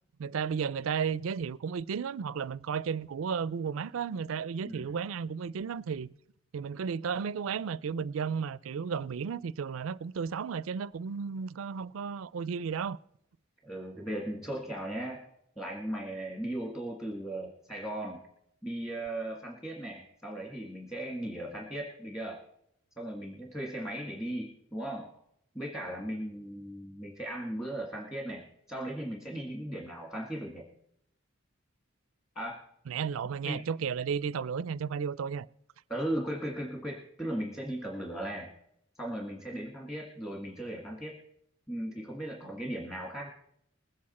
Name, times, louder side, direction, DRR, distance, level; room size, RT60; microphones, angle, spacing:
voice 1, 0.2-6.1 6.5-13.0 32.9-35.5, right 6 dB, 75° right, 0.4 m, -33 dB
voice 2, 13.6-15.2 15.6-18.2 18.6-22.4 23.0-25.1 25.6-30.7 32.4-32.6 33.2-33.6 35.9-38.5 39.0-41.2 41.7-43.3, right 1 dB, 15° left, 1.8 m, -37 dB
20.5 x 8.7 x 4.2 m
head